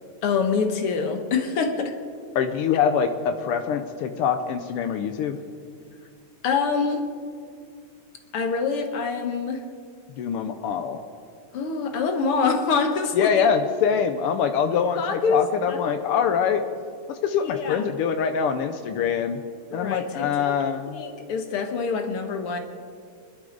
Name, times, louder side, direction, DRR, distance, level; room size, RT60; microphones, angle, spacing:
voice 1, 0.2-2.0 6.4-7.0 8.3-9.6 11.5-13.3 14.9-15.8 17.4-17.8 19.7-22.6, left 5 dB, 60° left, 6 dB, 1.7 m, -25 dB
voice 2, 2.3-5.4 10.1-11.0 13.1-16.6 17.1-19.4 19.7-21.0, left 7 dB, 85° left, 7 dB, 1.2 m, -24 dB
24.5 x 12.0 x 3.9 m, 2.3 s
omnidirectional pair, 3.3 m